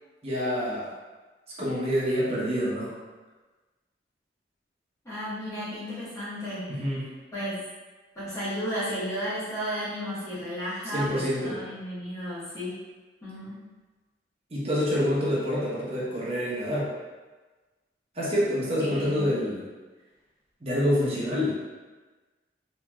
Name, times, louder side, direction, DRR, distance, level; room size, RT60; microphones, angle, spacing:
voice 1, 0.2-0.9 1.6-2.9 6.7-7.1 10.9-11.6 14.5-16.9 18.1-19.6 20.6-21.5, equal, 35° right, -7 dB, 0.8 m, -27 dB
voice 2, 5.0-6.7 7.3-7.6 8.1-12.8 13.2-13.7 18.8-19.3, equal, 20° left, -12 dB, 1.1 m, -33 dB
2.9 x 2.8 x 2.3 m, 1.3 s
head